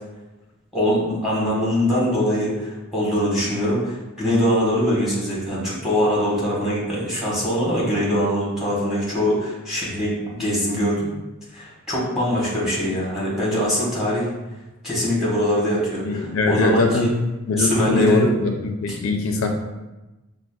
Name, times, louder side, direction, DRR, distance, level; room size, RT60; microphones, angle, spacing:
voice 1, 0.7-11.1 11.5-14.3 14.8-17.1 17.6-18.3 18.9-19.0, equal, ahead, -7 dB, 1.2 m, -22 dB
voice 2, 16.1-17.1 17.5-18.5 18.8-19.5, left 3 dB, 70° left, 3 dB, 0.4 m, -20 dB
6.0 x 2.0 x 2.3 m, 1.1 s
head